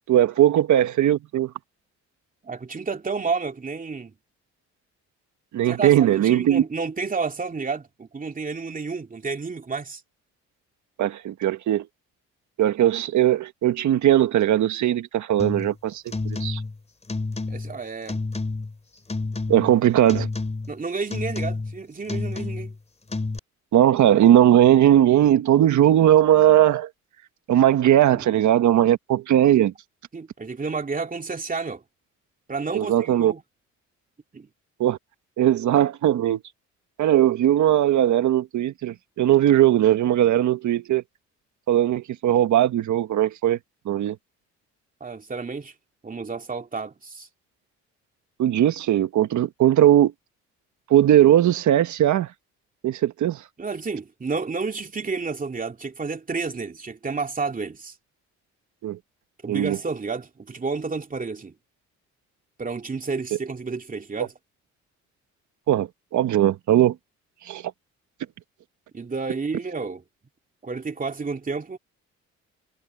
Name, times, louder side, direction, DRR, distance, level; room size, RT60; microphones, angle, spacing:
voice 1, 0.1-1.5 5.5-6.6 11.0-11.9 12.6-16.6 19.5-20.3 23.7-26.9 27.5-29.7 32.7-33.3 34.8-35.0 35.4-36.4 37.0-41.0 41.7-43.6 43.8-44.2 48.4-50.1 50.9-52.3 52.8-53.4 58.8-59.0 59.5-59.8 65.7-66.9 67.5-67.6, right 11 dB, 70° right, 1.5 m, -19 dB
voice 2, 2.4-4.1 5.7-10.0 17.5-18.2 20.7-22.7 28.1-28.3 30.1-31.8 32.5-33.4 34.3-34.5 45.0-45.7 46.0-47.3 53.6-57.9 59.4-61.5 62.6-64.3 68.9-70.0 70.6-71.8, right 4 dB, 25° right, 2.7 m, -30 dB
sound 1, 15.4-15.7 16.1-16.8 17.1-17.8 18.1-18.7 19.1-19.8 20.1-20.7 21.1-21.8 22.1-22.8 23.1-23.4, left 3 dB, 20° left, 4.2 m, -29 dB
cardioid pair, 90°, 30 cm